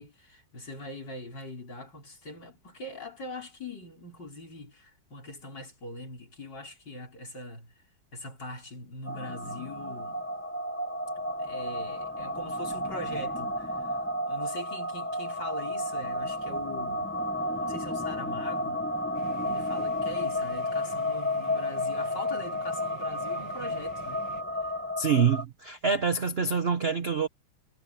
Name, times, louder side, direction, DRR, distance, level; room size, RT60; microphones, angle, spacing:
voice 1, 0.0-7.7 8.1-10.2 11.2-14.0 14.3-17.1 17.6-18.8 19.4-24.2 24.6-24.7, left 1 dB, 60° left, 5.8 m, -42 dB
sound 1, 9.0-25.4, left 1 dB, 10° left, 0.7 m, -32 dB
sound 2, 19.1-24.4, right 11 dB, 70° right, 2.0 m, -48 dB
voice 2, 25.0-27.3, right 6 dB, 40° right, 0.9 m, -26 dB
omnidirectional pair, 2.2 m